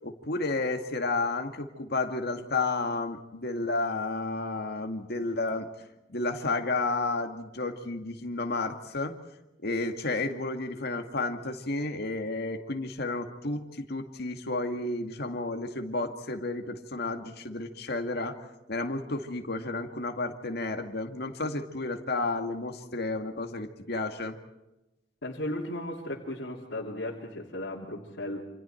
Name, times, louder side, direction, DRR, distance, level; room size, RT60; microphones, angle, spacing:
voice 1, 0.0-5.7 6.1-9.2 9.6-24.4, left 2 dB, 60° left, 5 dB, 2.1 m, -32 dB
voice 2, 25.2-28.5, left 1 dB, 90° left, -5 dB, 3.2 m, -35 dB
28.0 x 27.0 x 4.5 m, 0.99 s
head